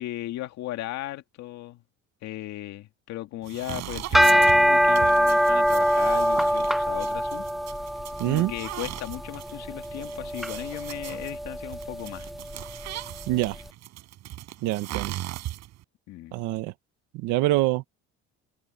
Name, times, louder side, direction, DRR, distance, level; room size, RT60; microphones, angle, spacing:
voice 1, 0.0-1.8 2.2-7.5 8.3-12.3 16.1-16.4, left 14 dB, 65° left, 2.3 m, -36 dB
sound 1, 3.4-15.8, right 15 dB, 60° right, 7.4 m, -38 dB
sound 2, 4.0-13.3, equal, ahead, 0.6 m, -24 dB
voice 2, 8.2-8.5 13.3-13.6 14.6-15.1 16.3-16.7 17.1-17.8, right 17 dB, 85° right, 1.6 m, -25 dB
cardioid pair, 145°, 30 cm